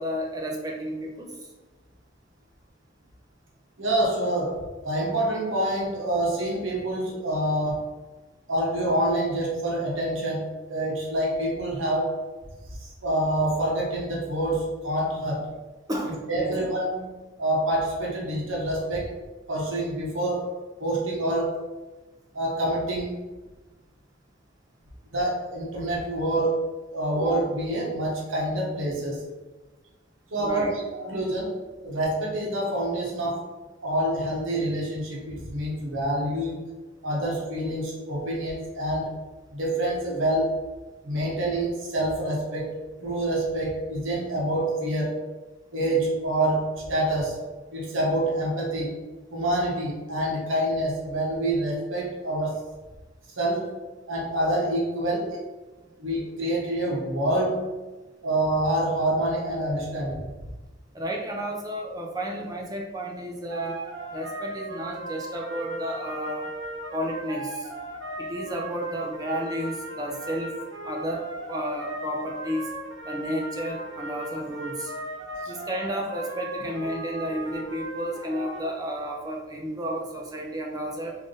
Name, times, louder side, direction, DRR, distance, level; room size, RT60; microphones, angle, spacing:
voice 1, 0.0-1.3 15.9-16.6 30.4-30.7 60.9-63.8 64.1-66.5 66.9-67.7 68.2-70.6 70.8-72.6 73.0-74.9 75.5-81.1, equal, 20° right, 0 dB, 0.5 m, -32 dB
voice 2, 3.8-7.9 8.5-12.2 12.8-15.5 16.1-19.2 19.5-21.6 22.3-23.2 25.1-29.3 30.3-30.7 31.0-33.5 33.8-36.7 37.0-39.2 39.5-40.6 41.0-45.2 45.7-47.4 47.7-49.0 49.3-52.6 53.4-53.8 54.1-55.5 56.0-57.7 58.2-60.3, right 1 dB, 80° right, -3 dB, 1.0 m, -27 dB
sound 1, 63.5-78.6, right 1 dB, 60° right, 0.6 m, -37 dB
3.5 x 2.6 x 3.8 m, 1.2 s
head